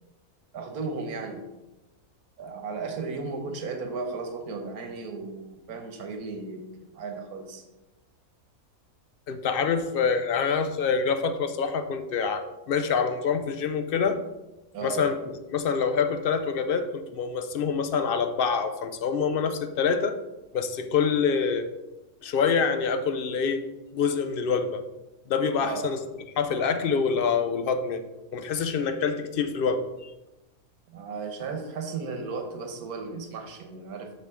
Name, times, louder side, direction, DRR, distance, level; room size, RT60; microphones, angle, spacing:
voice 1, 0.5-1.4 2.4-7.6 14.7-15.0 25.6-25.9 30.9-34.1, right 4 dB, 90° right, 5 dB, 1.5 m, -35 dB
voice 2, 9.3-14.2 14.8-20.1 20.5-21.7 22.2-23.6 23.9-24.8 25.3-26.0 26.4-28.0 28.3-30.1, left 6 dB, 55° left, 9 dB, 0.6 m, -26 dB
7.2 x 6.6 x 3.6 m, 1.0 s
omnidirectional pair, 1.6 m